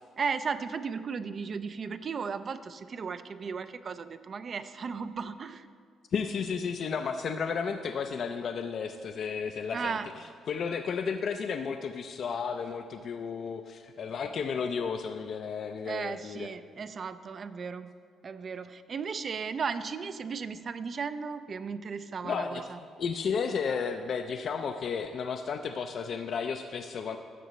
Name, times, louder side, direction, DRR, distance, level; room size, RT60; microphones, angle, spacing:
voice 1, 0.2-5.7 9.7-10.1 15.9-17.9 18.2-22.8, right 5 dB, 45° right, 12 dB, 0.3 m, -35 dB
voice 2, 6.1-16.5 22.2-27.2, left 6 dB, 60° left, 6 dB, 0.4 m, -33 dB
12.0 x 7.1 x 3.0 m, 2.1 s
cardioid pair, 90°, 0 cm